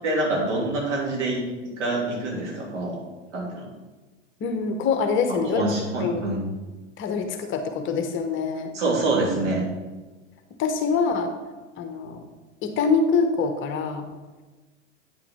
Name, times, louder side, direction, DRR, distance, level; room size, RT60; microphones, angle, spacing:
voice 1, 0.0-3.0 3.3-3.7 5.3-6.5 8.7-9.6, right 2 dB, 65° right, -2 dB, 2.8 m, -26 dB
voice 2, 4.4-5.6 6.0-6.3 7.0-8.7 10.6-11.3 11.8-12.3 12.6-14.0, left 5 dB, 30° left, 6 dB, 1.0 m, -25 dB
9.2 x 5.8 x 4.3 m, 1.2 s
hypercardioid pair, 100°, 38 cm